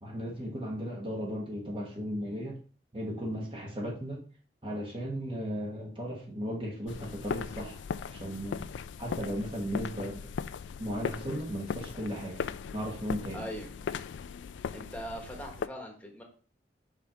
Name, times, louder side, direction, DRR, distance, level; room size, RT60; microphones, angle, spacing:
voice 1, 0.0-2.6 2.9-4.2 4.6-7.8 8.1-8.7 9.0-10.3 10.8-12.4 12.7-13.4, equal, 30° right, -1 dB, 1.0 m, -36 dB
sound 1, 6.9-15.7, left 6 dB, 85° left, 0.3 m, -38 dB
voice 2, 13.3-13.7 14.7-16.2, equal, 10° left, 0 dB, 1.3 m, -40 dB
5.6 x 5.0 x 3.7 m, 0.40 s
head